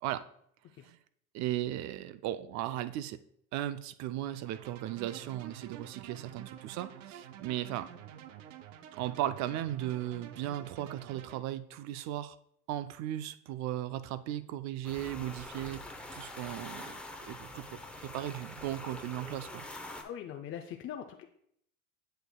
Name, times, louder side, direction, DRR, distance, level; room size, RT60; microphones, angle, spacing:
voice 1, 1.3-3.2 3.5-7.9 8.9-12.4 12.7-15.8 16.1-16.9 17.3-19.6, right 13 dB, 50° right, 13 dB, 0.4 m, -36 dB
sound 1, 4.5-11.4, right 10 dB, 90° right, 0.6 m, -49 dB
sound 2, 14.8-20.0, left 1 dB, 5° left, 0.7 m, -45 dB
voice 2, 20.0-21.2, left 9 dB, 35° left, 4 dB, 0.5 m, -42 dB
7.9 x 6.6 x 2.3 m, 0.70 s
supercardioid pair, 95°, 37 cm